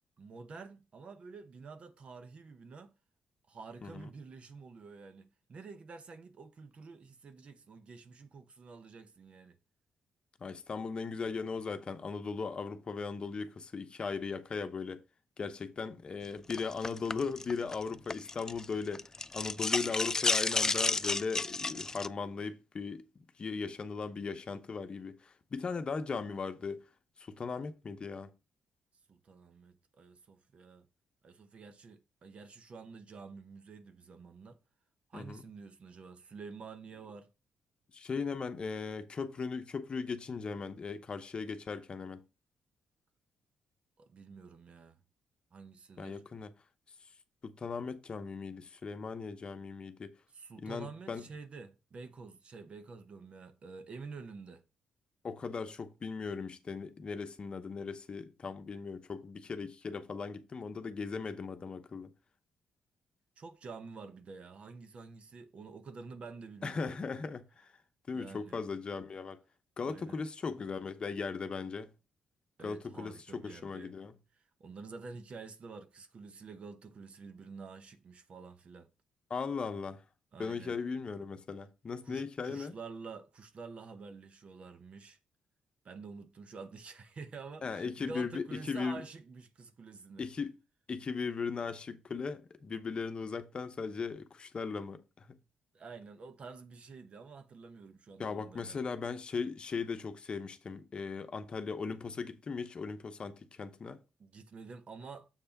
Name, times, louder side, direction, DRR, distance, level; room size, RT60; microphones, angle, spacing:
voice 1, 0.2-2.9 3.5-9.6 29.1-30.9 31.2-34.6 35.1-37.3 44.0-45.0 45.5-46.2 50.3-54.6 63.4-67.0 68.1-68.6 69.8-70.2 72.6-73.9 74.4-78.9 80.3-80.7 82.0-85.2 85.8-90.3 95.7-98.8 104.2-105.3, right 4 dB, 50° right, 0.9 m, -49 dB
voice 2, 10.4-15.0 15.4-19.1 19.3-23.0 23.4-26.8 27.2-28.3 35.1-35.4 37.9-42.2 46.0-46.5 47.4-50.2 50.6-51.3 55.2-62.1 66.6-67.7 68.1-69.4 69.8-71.9 72.6-74.1 79.3-80.0 80.4-82.7 87.6-89.0 90.2-90.5 90.9-95.4 98.2-104.0, left 5 dB, 40° left, 0.8 m, -38 dB
sound 1, 16.5-18.7 18.9-22.1, left 3 dB, 20° left, 0.3 m, -31 dB
7.4 x 3.3 x 5.8 m
cardioid pair, 80°, 3 cm